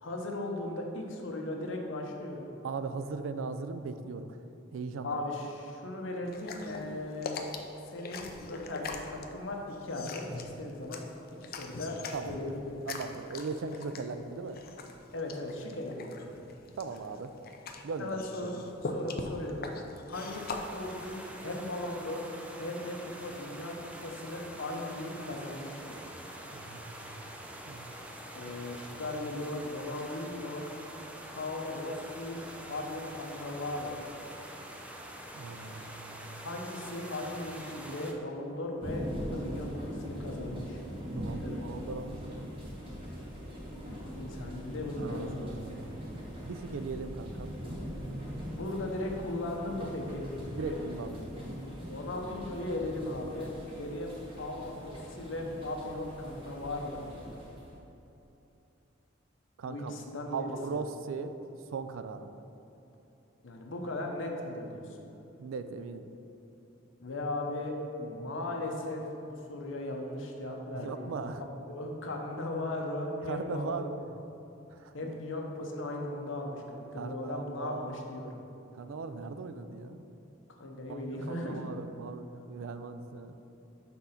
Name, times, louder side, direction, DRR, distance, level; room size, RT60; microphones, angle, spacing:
voice 1, 0.0-2.5 5.0-7.4 7.9-11.0 11.4-12.8 15.1-16.4 18.0-18.5 18.8-19.7 20.1-21.2 21.4-22.3 22.6-23.7 24.0-26.0 28.3-30.6 31.3-32.4 32.7-34.0 36.4-40.8 41.4-41.6 43.9-45.5 48.5-50.8 51.9-57.3 59.6-60.8 63.4-65.0 67.0-71.1 71.4-73.8 74.9-78.4 80.6-81.6, left 1 dB, 70° left, 1 dB, 0.9 m, -37 dB
voice 2, 2.6-4.4 4.7-5.2 12.1-12.5 12.9-14.6 16.8-17.3 17.8-18.2 18.5-18.6 26.5-27.4 27.7-27.9 35.4-36.4 41.2-42.5 45.0-45.9 46.4-47.5 50.6-51.3 59.6-59.9 60.3-61.4 61.7-62.3 65.4-66.1 70.7-71.4 73.2-73.9 74.7-75.1 76.9-78.0 78.7-80.1 80.9-81.0 81.3-83.4, right 4 dB, 85° right, 10 dB, 0.4 m, -39 dB
sound 1, 6.3-21.9, left 3 dB, 50° left, 0.5 m, -42 dB
sound 2, 20.1-38.1, right 1 dB, 5° right, 0.5 m, -45 dB
sound 3, 38.8-57.8, equal, 30° right, 1.2 m, -41 dB
6.0 x 3.8 x 5.7 m, 2.9 s
head